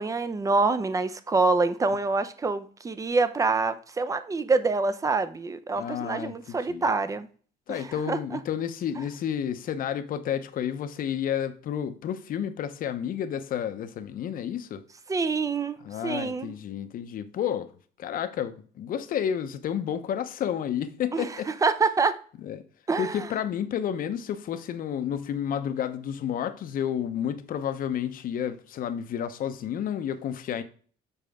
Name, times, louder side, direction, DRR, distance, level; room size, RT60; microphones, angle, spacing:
voice 1, 0.0-7.3 7.7-8.4 15.1-16.5 21.1-22.2 22.9-23.3, right 3 dB, 20° right, 0.6 m, -26 dB
voice 2, 5.7-6.8 7.7-14.8 15.8-17.7 18.0-21.5 22.4-22.6 23.0-30.6, left 9 dB, 55° left, 0.7 m, -31 dB
7.0 x 4.4 x 3.6 m
cardioid pair, 110°, 17 cm